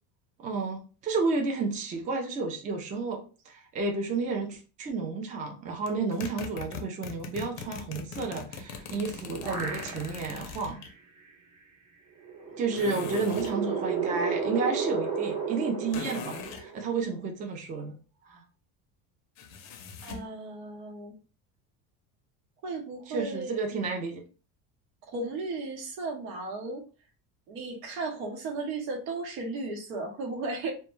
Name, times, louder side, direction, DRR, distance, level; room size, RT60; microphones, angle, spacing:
voice 1, 0.4-10.8 12.6-17.9 18.3-18.4 23.1-24.2, right 4 dB, 20° right, 3 dB, 0.3 m, -31 dB
sound 1, 5.9-10.9 12.8-13.6 15.9-16.7 19.4-20.3, left 6 dB, 45° left, 0.5 m, -41 dB
sound 2, 8.8-10.4 10.9-11.0 12.2-17.0, right 5 dB, 50° right, 0.8 m, -33 dB
voice 2, 12.8-13.4 20.0-21.1 22.6-23.6 25.1-26.8 27.5-30.7, right 3 dB, 85° right, 2 dB, 0.9 m, -35 dB
2.1 x 2.1 x 3.0 m, 0.36 s
cardioid pair, 145°, 37 cm